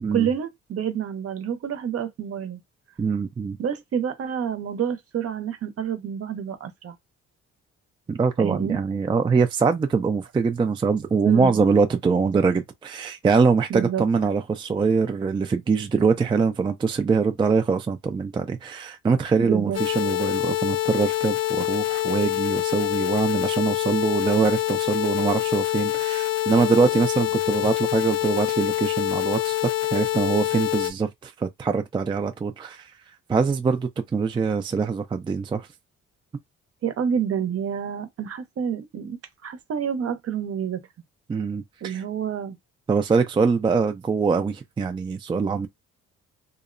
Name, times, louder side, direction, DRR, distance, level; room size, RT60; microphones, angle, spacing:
voice 1, 0.1-2.6 3.6-7.0 8.4-8.8 11.3-11.6 13.7-14.0 19.4-19.8 36.8-40.8 41.8-42.6, right 8 dB, 50° right, 0.7 m, -28 dB
voice 2, 3.0-3.6 8.1-29.6 29.9-32.9 33.3-35.7 41.3-42.0 42.9-45.7, right 5 dB, 15° right, 0.3 m, -23 dB
sound 1, 19.7-30.9, left 17 dB, 60° left, 0.5 m, -25 dB
2.7 x 2.0 x 2.5 m
cardioid pair, 90°, 30 cm